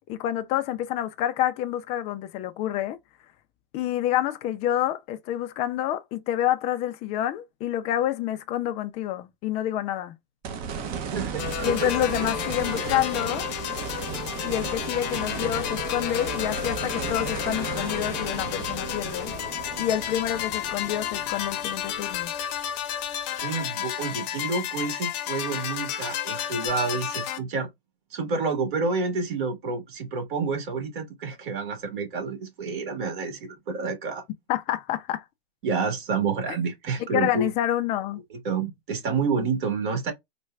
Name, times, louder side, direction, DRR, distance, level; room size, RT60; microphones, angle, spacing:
voice 1, 0.1-3.0 3.7-10.1 11.6-13.4 14.4-19.3 19.8-22.3 34.5-35.2 37.1-38.2, left 12 dB, 25° left, 0.4 m, -28 dB
sound 1, 10.4-22.8 23.2-23.3 26.7-26.8, right 7 dB, 30° right, 0.7 m, -35 dB
voice 2, 11.1-11.9 12.2-12.3 14.4-14.5 23.4-27.7 28.1-34.2 35.6-37.5 38.3-40.1, right 4 dB, 55° right, 1.7 m, -29 dB
sound 2, 11.4-27.4, left 11 dB, 45° left, 0.7 m, -31 dB
4.2 x 2.2 x 2.2 m
hypercardioid pair, 130°, 30 cm